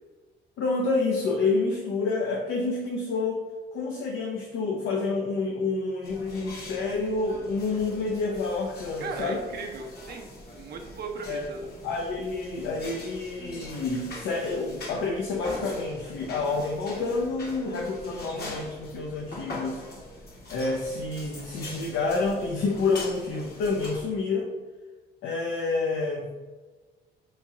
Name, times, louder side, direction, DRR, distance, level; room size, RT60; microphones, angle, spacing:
voice 1, 0.6-3.4 3.7-9.4 11.3-11.5 11.8-19.8 20.5-24.5 25.2-26.2, left 3 dB, 80° left, -1 dB, 0.6 m, -28 dB
sound 1, 6.0-24.0, left 2 dB, 50° left, 1.1 m, -42 dB
voice 2, 9.0-11.8, right 4 dB, 55° right, 3 dB, 0.5 m, -37 dB
3.0 x 2.8 x 3.5 m, 1.3 s
cardioid pair, 90°, 20 cm